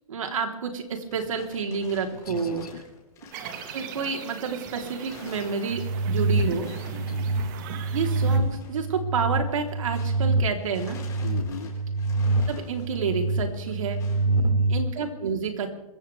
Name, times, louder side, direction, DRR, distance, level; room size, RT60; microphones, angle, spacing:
voice 1, 0.1-2.6 3.7-6.7 7.9-11.0 12.5-14.1 14.7-15.7, right 5 dB, 60° right, 3 dB, 3.6 m, -29 dB
sound 1, 0.7-10.3 10.6-14.3, left 5 dB, 15° left, 4.7 m, -50 dB
voice 2, 2.1-2.8 6.9-7.3 11.2-11.7 14.3-14.7, left 6 dB, 85° left, 7 dB, 2.3 m, -39 dB
sound 2, 3.3-8.4, right 8 dB, 35° right, 1.9 m, -40 dB
sound 3, 5.7-14.8, right 3 dB, 90° right, 2.5 m, -26 dB
26.5 x 15.0 x 3.5 m, 0.96 s
hypercardioid pair, 150°, 19 cm